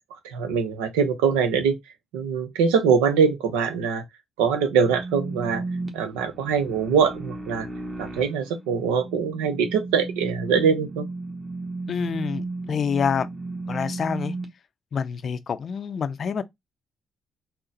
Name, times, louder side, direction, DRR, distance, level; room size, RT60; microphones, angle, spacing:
voice 1, 0.1-1.8 2.1-4.0 4.4-5.6 5.9-7.7 8.0-11.1, right 6 dB, 85° right, 0.6 m, -23 dB
sound 1, 4.8-14.5, right 3 dB, 25° right, 1.2 m, -34 dB
voice 2, 11.9-13.3 13.7-14.3 14.9-16.4, left 6 dB, 55° left, 0.4 m, -27 dB
3.9 x 2.1 x 3.9 m
hypercardioid pair, 50°, 0 cm